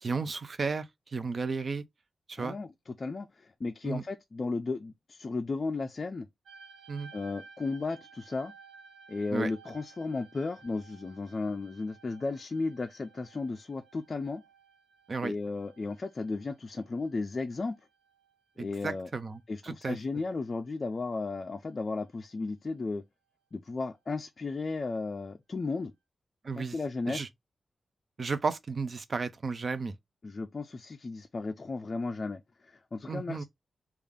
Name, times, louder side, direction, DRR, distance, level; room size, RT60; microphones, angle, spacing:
voice 1, 0.0-1.8 2.3-2.6 3.8-4.0 6.9-7.1 9.3-9.5 15.1-15.3 18.6-20.0 26.4-26.8 27.1-27.3 28.2-29.9 33.1-33.4, right 4 dB, 45° right, 0.4 m, -33 dB
voice 2, 2.4-6.3 7.1-8.5 9.1-14.4 15.2-17.8 18.6-19.1 19.5-23.0 23.5-25.9 26.6-27.2 30.2-33.4, left 3 dB, 40° left, 0.3 m, -34 dB
sound 1, 6.5-19.4 19.7-20.5 21.2-21.5, right 5 dB, 85° right, 0.9 m, -57 dB
3.4 x 2.3 x 3.4 m
wide cardioid pair, 95°, 0 cm